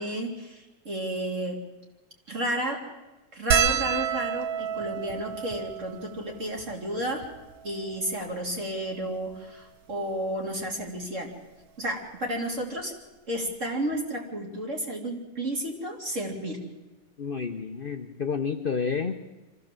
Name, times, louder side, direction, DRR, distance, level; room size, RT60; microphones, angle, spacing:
voice 1, 0.0-1.6 2.3-2.8 3.3-7.3 7.6-11.3 11.8-12.9 13.3-16.6, right 1 dB, 40° right, 0 dB, 3.4 m, -32 dB
sound 1, 3.5-8.1 8.9-9.0 9.1-9.3 10.6-10.8 12.3-12.4 12.6-12.8, right 8 dB, 75° right, 1.8 m, -30 dB
voice 2, 17.2-19.2, left 5 dB, 50° left, 6 dB, 0.6 m, -30 dB
25.0 x 15.0 x 7.6 m, 1.1 s
omnidirectional pair, 2.1 m